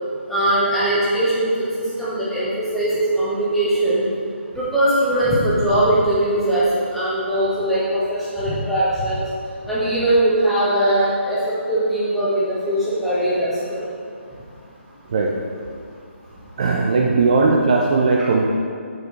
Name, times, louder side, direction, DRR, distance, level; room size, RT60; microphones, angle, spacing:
voice 1, 0.3-1.5 2.0-4.0 4.5-6.6 6.9-9.2 9.6-11.4 11.7-13.8, right 1 dB, ahead, -11 dB, 1.5 m, -20 dB
voice 2, 16.6-18.4, right 3 dB, 35° right, -1 dB, 0.6 m, -18 dB
6.6 x 6.5 x 4.6 m, 2.3 s
figure-of-eight pair, 145°, 7 cm